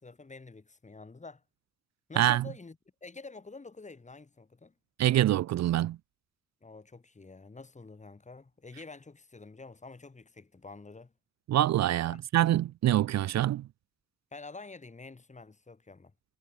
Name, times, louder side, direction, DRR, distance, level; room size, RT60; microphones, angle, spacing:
voice 1, 0.0-1.4 2.1-4.7 6.6-11.1 12.0-12.2 14.3-16.1, left 3 dB, 25° left, 6.0 m, -48 dB
voice 2, 5.0-6.0 11.5-13.7, right 13 dB, 60° right, 0.7 m, -25 dB
cardioid pair, 90°, 30 cm